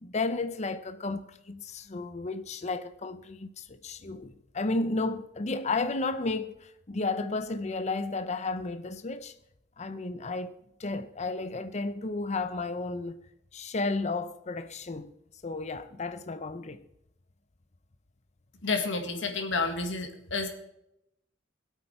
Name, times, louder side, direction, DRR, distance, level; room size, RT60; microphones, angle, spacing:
voice 1, 0.0-9.3 9.8-10.5 10.8-13.2 13.5-15.1 15.4-16.8, left 3 dB, 40° left, 0.7 m, -33 dB
voice 2, 18.6-20.5, left 4 dB, 80° left, 2.0 m, -30 dB
21.5 x 8.4 x 4.4 m
head